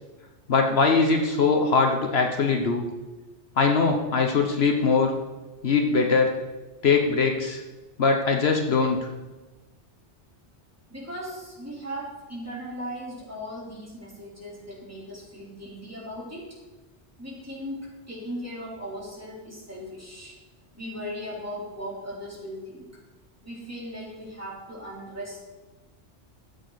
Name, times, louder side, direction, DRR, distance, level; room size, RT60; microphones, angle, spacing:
voice 1, 0.5-2.9 3.6-5.1 5.6-6.3 6.8-7.6 8.0-9.0, left 4 dB, 65° left, 3 dB, 1.2 m, -21 dB
voice 2, 10.9-16.5 17.2-20.3 20.7-22.9 23.4-25.4, equal, 15° right, -6 dB, 3.7 m, -38 dB
14.0 x 8.5 x 4.0 m, 1.2 s
omnidirectional pair, 1.1 m